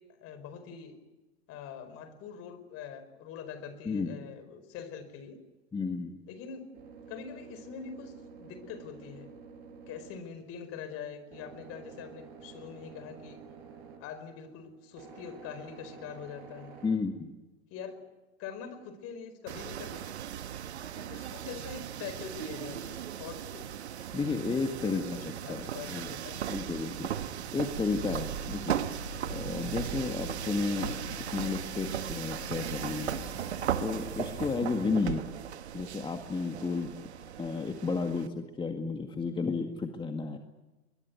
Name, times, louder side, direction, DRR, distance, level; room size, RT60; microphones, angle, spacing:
voice 1, 0.2-1.0 1.5-5.4 6.3-6.7 7.1-9.3 9.9-13.4 14.0-16.8 17.7-18.0 18.4-20.2 20.9-23.7 24.8-26.4 35.0-35.2, left 7 dB, 45° left, 11 dB, 4.8 m, -44 dB
voice 2, 3.9-4.2 5.7-6.2 16.8-17.3 24.1-26.1 26.5-27.1 27.5-28.8 29.3-33.2 33.8-35.2 35.7-37.1 37.4-40.4, left 4 dB, 15° left, 5 dB, 1.9 m, -32 dB
sound 1, 5.8-16.9, right 5 dB, 60° right, 6.3 m, -51 dB
sound 2, 19.5-38.3, right 10 dB, 80° right, 1.4 m, -37 dB
sound 3, 27.6-34.5, left 8 dB, 80° left, 3.1 m, -46 dB
22.0 x 22.0 x 9.4 m, 1.1 s
hypercardioid pair, 100°, 32 cm